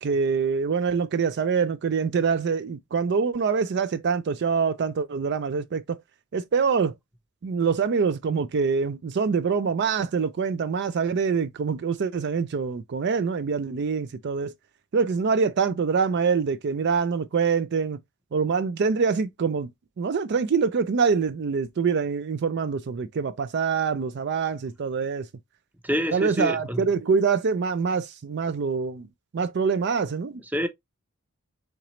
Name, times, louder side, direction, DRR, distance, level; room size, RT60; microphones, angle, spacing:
voice 1, 0.0-6.0 6.3-6.9 7.4-14.5 14.9-18.0 18.3-19.7 20.0-25.3 26.1-29.1 29.3-30.4, right 5 dB, 50° right, 0.4 m, -25 dB
voice 2, 25.8-26.8 30.5-30.7, equal, 5° right, 0.6 m, -27 dB
4.5 x 3.8 x 3.0 m
head